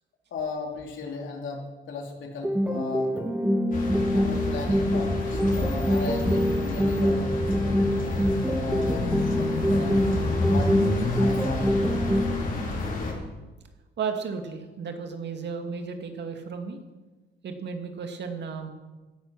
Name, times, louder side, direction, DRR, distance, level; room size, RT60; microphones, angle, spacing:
voice 1, 0.3-3.2 4.1-10.1 10.5-10.7 11.2-11.7, left 4 dB, 75° left, 1 dB, 3.5 m, -36 dB
sound 1, 2.4-12.4, equal, 5° right, 1.4 m, -25 dB
sound 2, 3.7-13.1, left 2 dB, 45° left, 4.2 m, -29 dB
voice 2, 14.0-16.8 17.4-18.7, right 5 dB, 60° right, 5 dB, 2.1 m, -34 dB
16.0 x 10.5 x 6.2 m, 1.2 s
cardioid pair, 90°, 20 cm